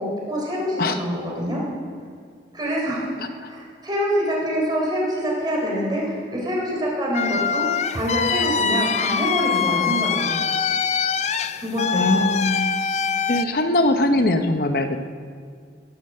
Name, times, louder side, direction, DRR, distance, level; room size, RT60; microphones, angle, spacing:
voice 1, 0.0-1.6 2.5-3.1 3.4-10.3 11.6-12.0, equal, 25° right, -4 dB, 3.8 m, -25 dB
voice 2, 3.2-3.5 11.9-12.7 13.3-15.0, left 2 dB, 50° left, 7 dB, 0.8 m, -21 dB
sound 1, 7.1-13.4, left 6 dB, 35° left, 0.4 m, -23 dB
16.0 x 10.0 x 7.5 m, 2.1 s
head